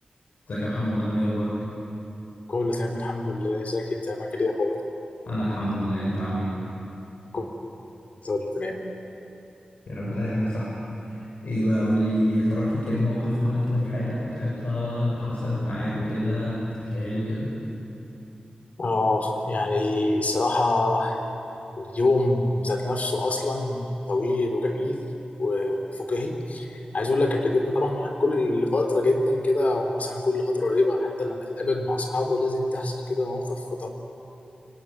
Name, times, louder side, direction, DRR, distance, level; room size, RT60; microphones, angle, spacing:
voice 1, 0.5-1.5 5.3-6.5 9.9-10.7 11.1-17.5, equal, 85° left, -6 dB, 5.6 m, -26 dB
voice 2, 2.5-4.8 7.3-7.5 8.2-8.8 18.8-21.2 21.8-25.0 25.4-33.9, left 2 dB, 60° left, 3 dB, 3.4 m, -25 dB
24.0 x 18.0 x 9.5 m, 2.8 s
wide cardioid pair, 65°, 3 cm